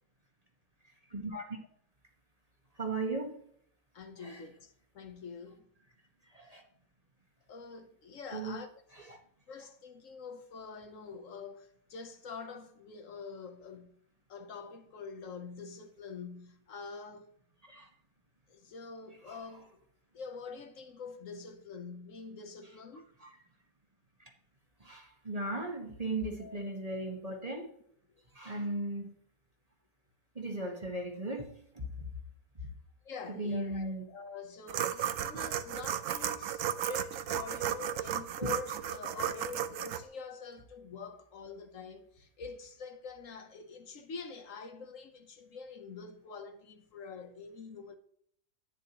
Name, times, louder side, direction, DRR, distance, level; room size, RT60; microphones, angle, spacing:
voice 1, 1.1-1.4 2.8-3.3 4.2-4.4 6.3-6.6 8.3-8.6 9.1-9.2 17.7-17.9 19.3-19.4 23.2-23.3 24.8-27.7 28.3-29.1 30.3-31.5 31.7-31.9 33.3-34.0 38.4-38.5, right 2 dB, 25° right, 1.2 m, -36 dB
voice 2, 3.9-5.7 6.5-6.6 7.5-8.7 9.0-9.1 9.5-14.0 14.3-17.3 18.5-19.7 20.1-23.1 26.4-26.6 33.0-48.0, left 5 dB, 65° left, 1.2 m, -46 dB
sound 1, 34.7-40.0, right 10 dB, 65° right, 1.0 m, -34 dB
10.5 x 9.4 x 2.9 m
omnidirectional pair, 1.5 m